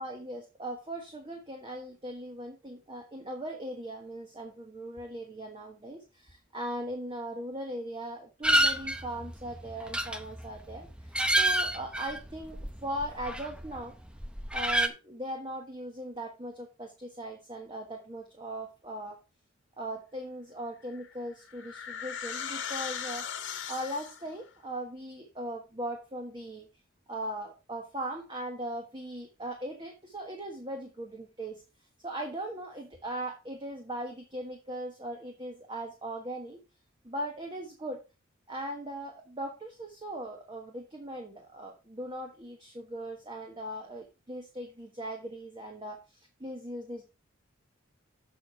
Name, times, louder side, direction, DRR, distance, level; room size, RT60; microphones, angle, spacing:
voice 1, 0.0-13.9 14.5-19.2 19.8-23.2 23.7-26.7 27.1-31.6 32.0-36.6 37.0-38.0 38.5-47.0, right 1 dB, 25° right, 2 dB, 1.4 m, -39 dB
Rueda oxodada y hamacas, 8.4-13.8 14.1-14.9, right 1 dB, 5° right, 0.7 m, -29 dB
sound 1, 20.9-24.3, left 8 dB, 65° left, 1.6 m, -38 dB
7.7 x 6.5 x 4.5 m, 0.29 s
head